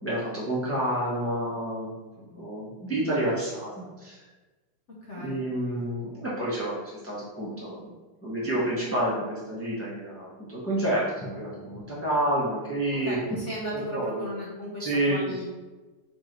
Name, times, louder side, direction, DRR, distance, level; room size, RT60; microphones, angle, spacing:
voice 1, 0.0-4.2 5.2-7.9 8.2-13.2 13.7-14.3 14.8-15.2, right 1 dB, 15° left, -7 dB, 0.5 m, -29 dB
voice 2, 5.1-5.4 13.0-15.5, equal, 60° left, -5 dB, 0.8 m, -35 dB
3.9 x 3.1 x 3.8 m, 1.2 s
omnidirectional pair, 2.0 m